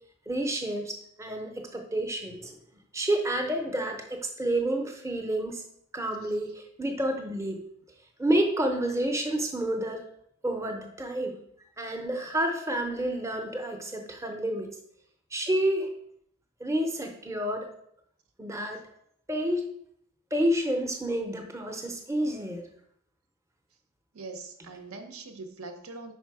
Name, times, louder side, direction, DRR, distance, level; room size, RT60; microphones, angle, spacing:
voice 1, 0.3-2.6 2.9-5.6 5.9-7.6 8.2-10.0 10.4-11.4 11.8-14.8 15.3-15.9 16.6-17.7 18.4-18.8 19.3-19.7 20.3-22.7, right 1 dB, 15° right, 4 dB, 0.6 m, -29 dB
voice 2, 24.1-26.1, right 3 dB, 75° right, 7 dB, 0.8 m, -42 dB
5.1 x 4.4 x 4.7 m, 0.70 s
head